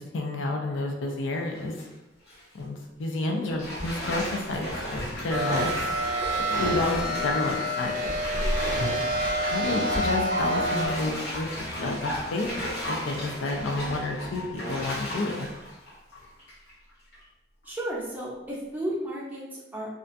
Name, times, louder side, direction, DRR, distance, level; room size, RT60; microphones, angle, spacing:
voice 1, 0.0-1.8 2.5-5.9 6.6-8.1 9.1-11.5 11.8-15.5, left 2 dB, 85° left, 2 dB, 0.4 m, -30 dB
Bathtub (filling or washing), 1.4-1.8 2.3-2.4 3.6-16.7 17.1-17.2, equal, 55° left, 0.7 m, -33 dB
sound 1, 5.3-10.9, right 1 dB, 70° right, 0.4 m, -28 dB
voice 2, 17.6-20.0, right 1 dB, 10° right, -5 dB, 0.5 m, -34 dB
2.4 x 2.2 x 2.5 m, 0.94 s
head